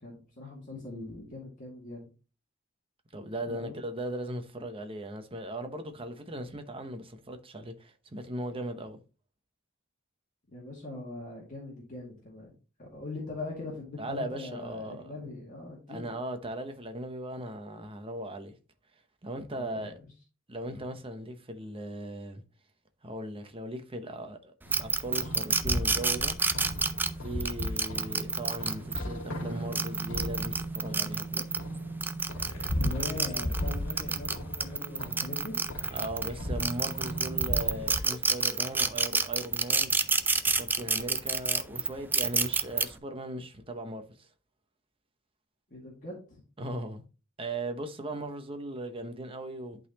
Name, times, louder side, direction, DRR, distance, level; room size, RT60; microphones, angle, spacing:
voice 1, 0.0-2.1 3.5-3.8 10.5-12.5 12.8-16.2 19.5-19.9 32.7-35.6 45.7-46.4, left 2 dB, 40° left, 2.1 m, -41 dB
voice 2, 3.1-9.0 14.0-15.1 15.9-18.5 19.2-20.0 20.5-22.4 23.0-26.4 27.2-31.5 35.9-39.9 40.5-44.3 46.6-47.0 47.4-49.8, right 1 dB, 30° right, 1.0 m, -38 dB
sound 1, 24.7-38.0, equal, 90° left, 1.6 m, -36 dB
sound 2, 24.7-29.0 29.6-31.6 32.0-36.3 36.6-42.8, right 4 dB, 10° right, 0.4 m, -28 dB
11.0 x 4.0 x 2.9 m
head